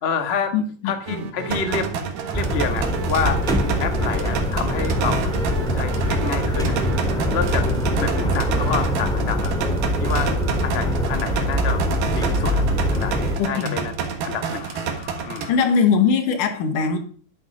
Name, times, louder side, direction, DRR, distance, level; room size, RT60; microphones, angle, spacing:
voice 1, 0.0-0.5 0.8-1.9 2.3-3.4 3.8-5.3 5.7-6.8 7.3-7.7 7.9-9.5 10.0-10.3 10.6-11.8 12.1-12.7 12.9-13.9 14.2-15.5, left 6 dB, 40° left, 0.8 m, -28 dB
voice 2, 0.5-1.3 13.4-13.8 15.5-17.0, left 6 dB, 90° left, 3.2 m, -21 dB
sound 1, 1.1-8.9, right 5 dB, 55° right, 2.5 m, -34 dB
sound 2, 1.5-15.5, right 6 dB, 85° right, 3.2 m, -29 dB
sound 3, 2.3-13.4, equal, ahead, 1.8 m, -23 dB
11.0 x 10.5 x 5.3 m
omnidirectional pair, 3.6 m